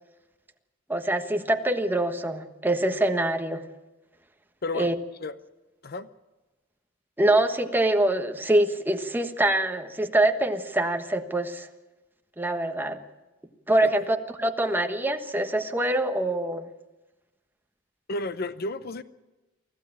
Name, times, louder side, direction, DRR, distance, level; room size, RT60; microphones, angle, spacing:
voice 1, 0.9-3.6 4.7-4.9 7.2-11.7 12.4-13.0 13.7-16.7, right 1 dB, 10° right, 6 dB, 1.3 m, -24 dB
voice 2, 4.6-4.9 5.2-5.3 5.8-6.1 13.8-13.9 18.1-19.0, left 2 dB, 50° left, 14 dB, 0.7 m, -32 dB
24.5 x 15.5 x 8.8 m, 1.1 s
head